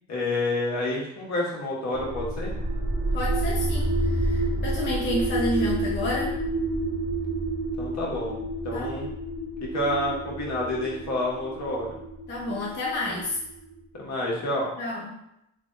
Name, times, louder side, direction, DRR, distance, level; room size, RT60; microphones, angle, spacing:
voice 1, 0.1-2.5 7.8-8.4 8.6-9.1 9.7-11.9 13.9-14.7, left 1 dB, 65° left, -4 dB, 1.3 m, -28 dB
sound 1, 1.9-13.7, right 1 dB, 20° right, 0.9 m, -29 dB
voice 2, 3.1-6.4 8.7-8.9 12.3-13.4 14.8-15.2, left 1 dB, 35° left, -3 dB, 0.7 m, -30 dB
3.3 x 2.4 x 3.8 m, 0.82 s
cardioid pair, 90°, 30 cm